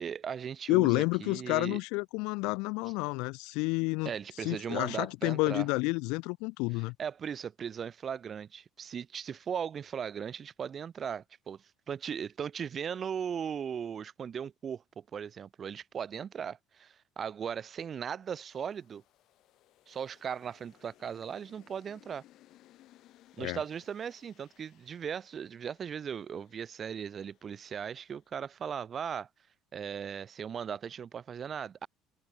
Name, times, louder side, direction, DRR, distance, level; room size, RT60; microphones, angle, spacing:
voice 1, 0.0-1.8 4.1-5.7 7.0-19.0 19.9-22.2 23.4-29.3 29.7-31.9, right 7 dB, 25° right, 0.4 m, -38 dB
voice 2, 0.7-4.1 4.4-6.9 23.4-23.6, left 27 dB, 80° left, 0.6 m, -30 dB
sound 1, 18.2-28.6, left 14 dB, 50° left, 2.7 m, -63 dB
cardioid pair, 180°, 0 cm